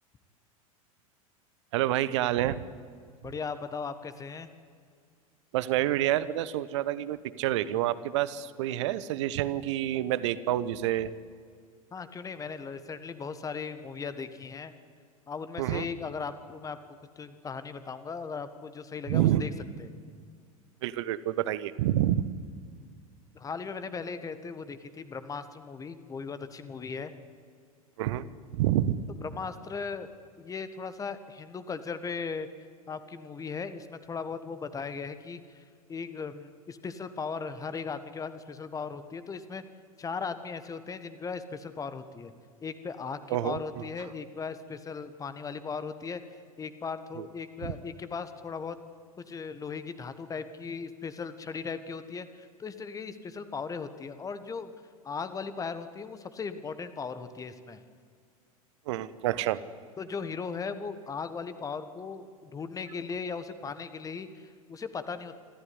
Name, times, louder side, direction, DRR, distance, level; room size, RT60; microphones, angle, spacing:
voice 1, 1.7-2.6 5.5-11.1 15.6-15.9 19.1-19.4 20.8-22.2 28.0-28.2 28.5-29.0 43.3-43.9 47.2-47.3 47.6-47.7 58.9-59.6, right 13 dB, 50° right, 16 dB, 1.1 m, -28 dB
voice 2, 3.2-4.5 11.9-14.7 15.3-16.8 17.2-19.5 19.8-19.9 23.3-27.1 29.2-30.1 30.4-32.5 32.9-35.6 35.9-39.6 40.0-42.3 42.6-46.2 46.6-48.8 49.2-54.7 55.0-57.8 60.0-65.3, left 5 dB, 20° left, 12 dB, 1.5 m, -37 dB
27.0 x 14.0 x 9.9 m, 2.1 s
figure-of-eight pair, 85°, 19 cm